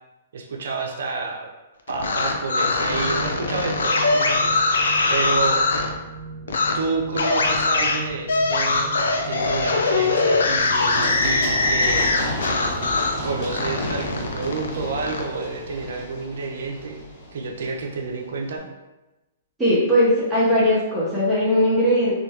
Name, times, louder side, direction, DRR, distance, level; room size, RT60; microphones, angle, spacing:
voice 1, 0.3-1.5 1.9-4.6 5.1-5.6 6.5-8.9 9.3-12.2 13.2-17.0 17.3-18.6, right 4 dB, 70° right, 1 dB, 0.4 m, -29 dB
sound 1, 1.9-5.9 6.5-6.7 7.1-13.2 13.5-15.2, left 3 dB, 85° left, 0.3 m, -22 dB
sound 2, 2.9-15.1, right 4 dB, 40° right, 0.9 m, -38 dB
Run, 10.6-18.2, left 1 dB, 45° left, 1.0 m, -33 dB
voice 2, 19.6-22.1, equal, 5° right, -10 dB, 0.7 m, -19 dB
2.2 x 2.1 x 2.8 m, 1.1 s
hypercardioid pair, 140°, 0 cm